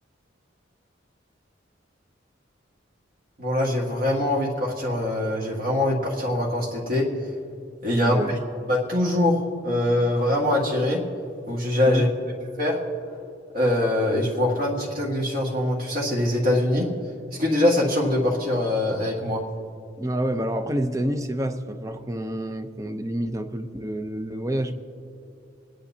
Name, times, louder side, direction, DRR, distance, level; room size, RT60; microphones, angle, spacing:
voice 1, 3.4-7.1 7.8-8.2 8.7-11.0 11.5-12.1 12.6-12.8 13.5-16.9 17.3-19.4, left 1 dB, 50° right, -3 dB, 1.7 m, -23 dB
voice 2, 8.0-8.4 11.8-12.1 20.0-24.7, right 1 dB, 15° right, 8 dB, 0.5 m, -28 dB
27.0 x 10.0 x 2.8 m, 2.6 s
head